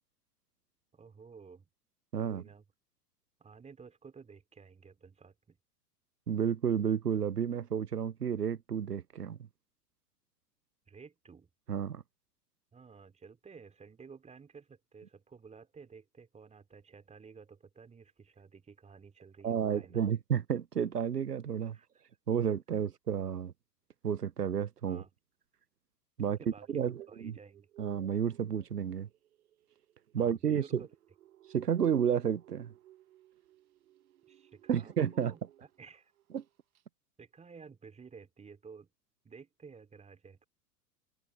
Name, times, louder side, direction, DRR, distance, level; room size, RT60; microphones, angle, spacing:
voice 1, 0.9-1.7 2.2-2.6 3.4-5.6 10.9-11.5 12.7-20.2 21.7-22.0 24.9-25.1 26.2-27.7 30.2-31.0 34.3-36.1 37.2-38.9 39.2-40.5, right 5 dB, 15° right, 3.1 m, -53 dB
voice 2, 2.1-2.4 6.3-9.4 11.7-12.0 19.4-21.8 22.3-23.5 24.0-25.0 26.2-26.4 26.7-27.3 27.8-29.1 30.1-30.9 31.5-32.7 34.7-35.3 36.3-36.4, right 8 dB, 85° right, 0.8 m, -31 dB
sound 1, 26.6-35.9 36.2-36.5 36.8-36.9, right 13 dB, 65° right, 1.5 m, -58 dB
figure-of-eight pair, 90°, 46 cm